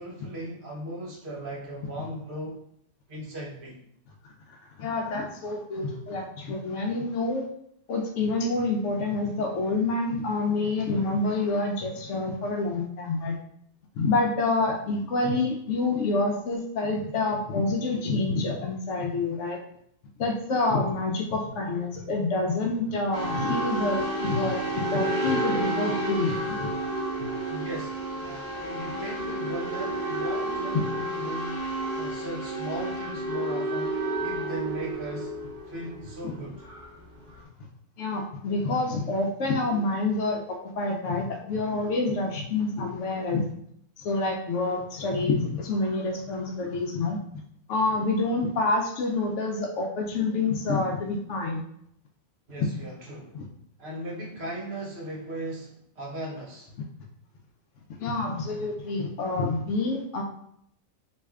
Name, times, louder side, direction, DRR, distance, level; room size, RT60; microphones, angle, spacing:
voice 1, 0.0-2.6 3.1-3.8 27.5-35.3 35.7-36.7 52.5-53.4 53.8-56.7, right 1 dB, 55° right, -3 dB, 1.0 m, -38 dB
voice 2, 4.5-7.5 7.9-13.4 14.0-19.6 20.2-26.7 36.2-36.3 38.0-43.5 44.0-47.2 47.7-51.6 52.6-52.7 53.3-53.5 58.0-60.2, left 3 dB, 70° left, 2 dB, 0.8 m, -27 dB
sound 1, 23.1-37.4, right 1 dB, 30° right, 1.2 m, -31 dB
3.2 x 2.6 x 3.5 m, 0.72 s
omnidirectional pair, 1.4 m